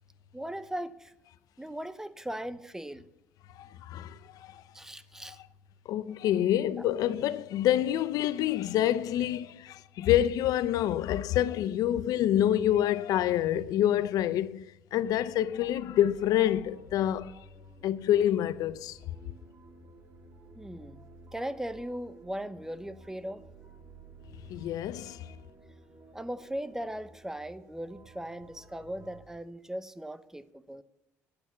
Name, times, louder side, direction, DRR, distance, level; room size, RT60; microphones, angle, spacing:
voice 1, 0.3-1.1 1.6-3.1 4.7-5.4 20.6-21.0 21.3-23.4 26.1-30.8, right 1 dB, 5° right, 0.9 m, -38 dB
voice 2, 3.6-4.6 5.3-5.4 5.9-14.6 14.9-17.4 17.8-19.0 24.5-25.3, left 12 dB, 70° left, 0.6 m, -27 dB
sound 1, 15.0-29.2, right 2 dB, 40° right, 3.6 m, -54 dB
11.5 x 8.7 x 7.1 m
supercardioid pair, 70°, 7 cm